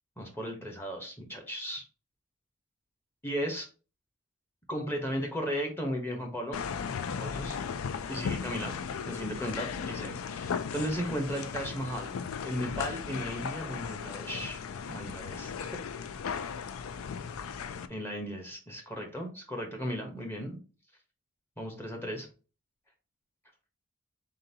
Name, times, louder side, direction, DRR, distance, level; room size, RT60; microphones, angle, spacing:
voice 1, 0.2-1.8 3.2-3.7 4.7-6.6 7.1-7.5 8.1-8.7 9.0-12.1 12.4-14.6 14.9-15.7 17.9-20.6 21.6-22.3, equal, 10° left, 2 dB, 0.8 m, -35 dB
sound 1, 6.5-17.9, left 6 dB, 85° left, 0.4 m, -36 dB
3.8 x 3.8 x 2.7 m, 0.35 s
head